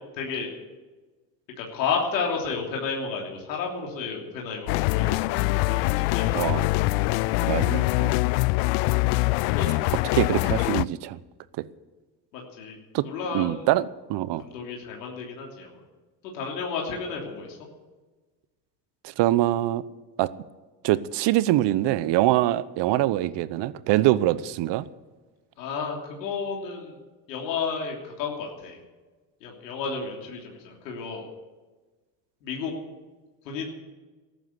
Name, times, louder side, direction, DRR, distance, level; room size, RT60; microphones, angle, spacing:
voice 1, 0.2-0.5 1.6-6.3 9.5-9.7 12.3-12.8 13.0-13.7 14.4-15.8 16.2-17.6 25.6-27.0 27.3-28.8 29.4-31.3 32.4-32.7 33.4-33.7, left 5 dB, 90° left, 3.2 m, -32 dB
sound 1, 4.7-10.8, left 22 dB, 70° left, 0.5 m, -23 dB
voice 2, 6.3-6.7 7.5-8.1 10.1-11.2 11.6-11.7 12.9-13.1 13.3-14.4 19.0-19.8 20.2-20.3 20.8-24.9, right 15 dB, 55° right, 0.9 m, -24 dB
14.5 x 11.5 x 8.0 m
hypercardioid pair, 80°, 49 cm